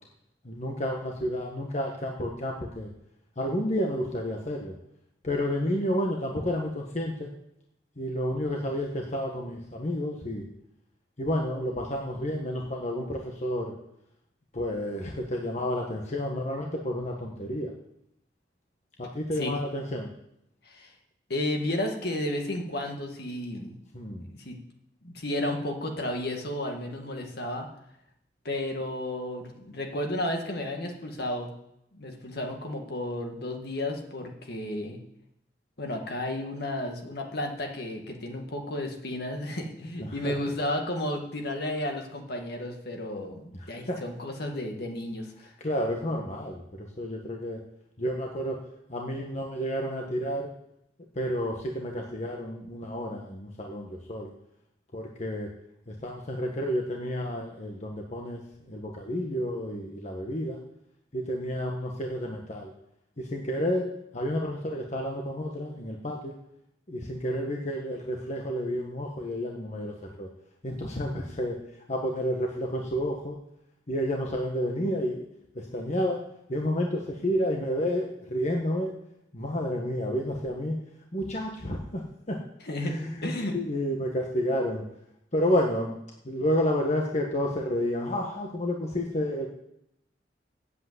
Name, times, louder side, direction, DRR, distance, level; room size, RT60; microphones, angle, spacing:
voice 1, 0.4-2.9 3.4-4.7 5.2-7.3 8.0-10.5 11.2-13.7 14.5-17.7 19.0-20.1 23.9-24.2 40.0-40.3 43.9-44.0 45.6-47.6 48.0-48.6 48.9-50.5 51.1-54.3 54.9-55.5 55.9-60.6 61.1-62.7 63.2-66.3 66.9-70.3 70.6-71.6 71.9-73.4 73.9-75.3 75.5-76.2 76.5-78.9 79.3-80.8 81.1-82.4 82.8-84.9 85.3-86.0 86.2-89.5, equal, 40° left, 0 dB, 1.3 m, -30 dB
voice 2, 21.3-23.8 24.3-24.6 25.0-27.7 28.4-31.5 31.9-35.0 35.8-45.5 82.6-83.0 83.2-83.5, left 1 dB, 60° left, 2 dB, 1.9 m, -32 dB
8.5 x 8.1 x 8.1 m, 0.78 s
head